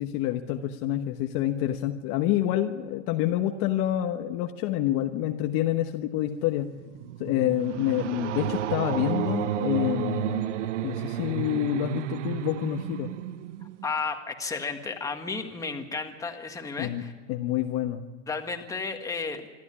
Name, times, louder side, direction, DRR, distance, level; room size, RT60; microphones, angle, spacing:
voice 1, 0.0-6.7 7.2-10.4 10.8-13.1 16.8-17.0 17.3-18.1, left 12 dB, 40° left, 5 dB, 1.1 m, -27 dB
sound 1, 6.7-14.0, right 12 dB, 70° right, 0.9 m, -31 dB
voice 2, 13.8-17.1 18.3-19.5, left 4 dB, 10° left, 5 dB, 1.6 m, -33 dB
26.0 x 12.0 x 9.9 m, 1.3 s
supercardioid pair, 145°, 38 cm